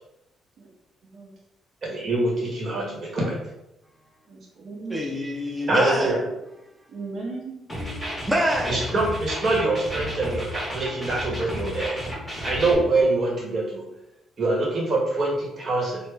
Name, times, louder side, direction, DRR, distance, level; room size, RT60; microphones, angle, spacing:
voice 1, 1.8-3.4 5.7-6.2 8.7-12.0 12.4-13.8 14.4-16.0, right 2 dB, 45° right, 1.1 m, -24 dB
voice 2, 4.3-5.1 6.9-7.6, right 3 dB, 65° right, 0.7 m, -37 dB
voice 3, 4.9-6.2 7.8-8.9, equal, 10° right, 0.6 m, -26 dB
sound 1, 7.7-12.7, equal, 10° left, 1.3 m, -32 dB
3.0 x 2.1 x 3.4 m
cardioid pair, 90°, 0 cm